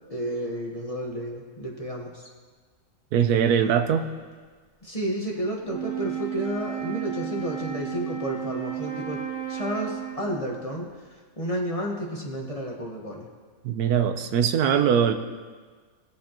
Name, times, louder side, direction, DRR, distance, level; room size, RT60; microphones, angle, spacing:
voice 1, 0.1-2.2 4.8-10.9 11.4-13.3, equal, 25° left, -1 dB, 1.2 m, -31 dB
voice 2, 3.1-4.0 13.6-15.1, right 8 dB, 85° right, 8 dB, 1.2 m, -21 dB
Wind instrument woodwind instrument, 5.6-10.4, right 11 dB, 35° right, 1.7 m, -33 dB
19.5 x 7.3 x 3.0 m, 1.5 s
omnidirectional pair, 1.6 m